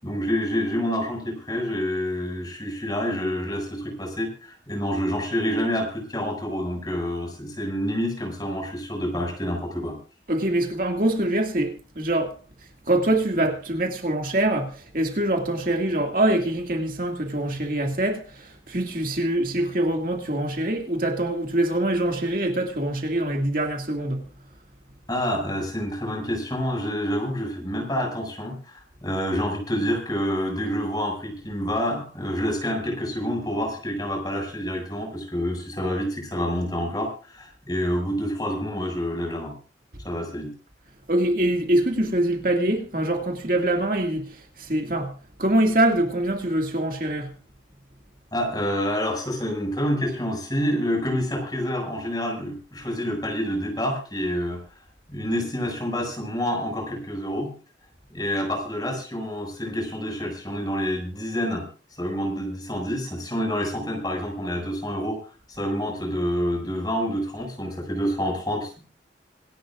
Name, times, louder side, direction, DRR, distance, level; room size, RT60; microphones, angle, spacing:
voice 1, 0.0-9.9 25.1-39.5 40.0-40.5 48.3-54.6 55.1-57.5 58.1-61.7 62.0-68.8, equal, 20° left, 6.7 m, -28 dB
voice 2, 10.3-24.3 39.9-40.0 41.1-47.3, right 1 dB, 50° right, 2.3 m, -24 dB
26.5 x 12.0 x 2.6 m
head